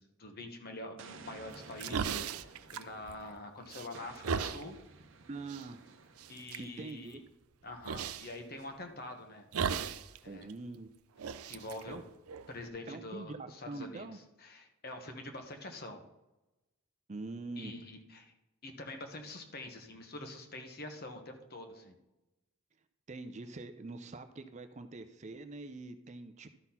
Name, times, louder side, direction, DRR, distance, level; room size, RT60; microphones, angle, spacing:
voice 1, 0.0-4.8 6.3-7.2 7.6-9.5 10.2-10.5 11.4-12.0 12.5-14.1 14.4-16.0 17.6-18.3 18.6-22.0, left 2 dB, 45° left, 5 dB, 1.2 m, -45 dB
Explosion, 1.0-3.4 3.9-6.5, right 4 dB, 60° right, 0.8 m, -54 dB
sound 1, 1.5-3.4 3.7-4.6 5.5-5.7 6.2-6.6 7.8-8.3 9.5-10.2 10.4-10.5 11.2-12.7, right 6 dB, 85° right, 0.5 m, -36 dB
voice 2, 5.3-5.8 6.3-7.2 10.2-10.9 11.9-12.0 12.9-14.2 17.1-17.7 23.1-26.5, right 3 dB, 30° right, 8 dB, 0.5 m, -44 dB
12.0 x 4.1 x 5.7 m, 0.99 s
head